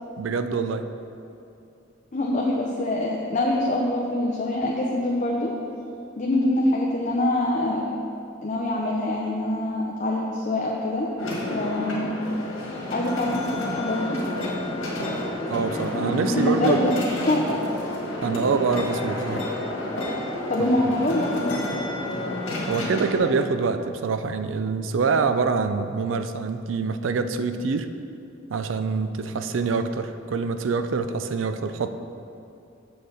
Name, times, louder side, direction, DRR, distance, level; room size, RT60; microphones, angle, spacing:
voice 1, 0.2-0.8 15.4-16.8 18.2-19.4 22.7-27.9 28.5-31.9, right 4 dB, 75° right, 10 dB, 0.4 m, -25 dB
voice 2, 2.1-5.5 6.2-7.8 8.4-11.1 11.5-12.1 12.9-14.2 15.9-16.9 17.3-17.6 20.5-21.6, left 1 dB, 40° left, -2 dB, 0.7 m, -24 dB
sound 1, 11.2-23.2, left 1 dB, 80° left, 1.6 m, -30 dB
7.6 x 6.5 x 4.0 m, 2.6 s
head